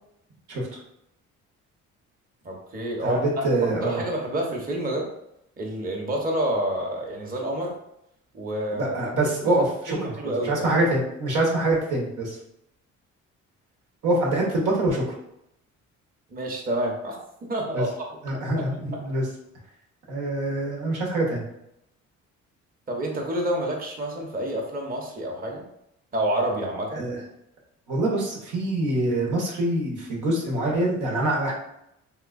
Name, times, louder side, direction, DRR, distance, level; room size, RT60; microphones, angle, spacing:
voice 1, 2.4-5.1 5.6-7.7 8.3-9.0 9.9-10.7 16.3-17.2 17.5-18.0 22.9-25.6 26.1-27.0, right 1 dB, 30° right, -1 dB, 0.8 m, -28 dB
voice 2, 3.0-4.0 8.7-12.4 14.0-15.0 17.7-17.8 18.2-19.3 20.1-21.4 26.9-27.2 27.9-31.5, right 2 dB, 85° right, -2 dB, 1.0 m, -25 dB
3.3 x 2.9 x 2.5 m, 0.79 s
cardioid pair, 90°, 30 cm